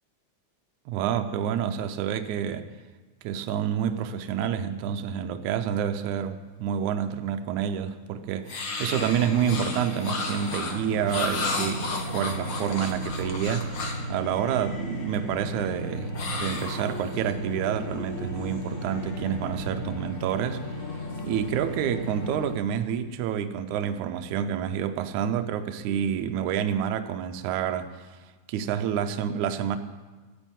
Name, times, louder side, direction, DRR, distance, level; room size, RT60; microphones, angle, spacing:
voice 1, 0.9-2.7 3.2-11.9 12.1-13.8 14.1-20.7 21.2-27.9 28.5-29.8, right 9 dB, 80° right, 8 dB, 2.2 m, -28 dB
sound 1, 8.5-14.1 16.1-17.3, left 3 dB, 45° left, 1.9 m, -33 dB
sound 2, 8.9-22.5, equal, 65° left, 3.9 m, -35 dB
14.5 x 10.0 x 9.0 m, 1.3 s
omnidirectional pair, 3.5 m